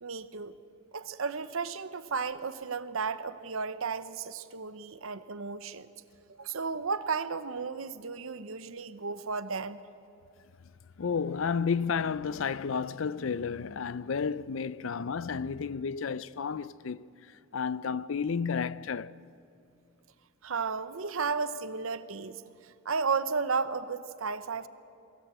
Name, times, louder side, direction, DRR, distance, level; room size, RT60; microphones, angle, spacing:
voice 1, 0.0-0.5 0.9-5.9 6.4-9.8 20.4-24.7, right 5 dB, 70° right, 0.8 m, -33 dB
voice 2, 11.0-17.1 17.5-19.1, left 6 dB, 65° left, 0.5 m, -31 dB
22.5 x 16.0 x 8.2 m
head